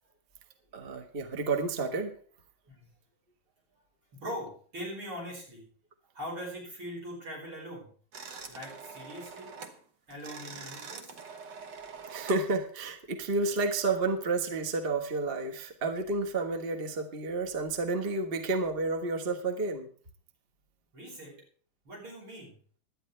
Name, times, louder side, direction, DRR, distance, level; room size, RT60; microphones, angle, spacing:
voice 1, 0.7-2.2 12.1-19.9, right 3 dB, 30° right, 5 dB, 1.4 m, -31 dB
voice 2, 4.1-5.7 6.1-7.9 8.5-9.6 10.1-11.2 20.9-21.4 21.8-22.5, equal, 80° right, -1 dB, 5.9 m, -41 dB
sound 1, 8.1-9.8 10.1-12.5, right 5 dB, 60° right, 1.8 m, -44 dB
17.0 x 12.0 x 3.3 m, 0.43 s
omnidirectional pair, 2.3 m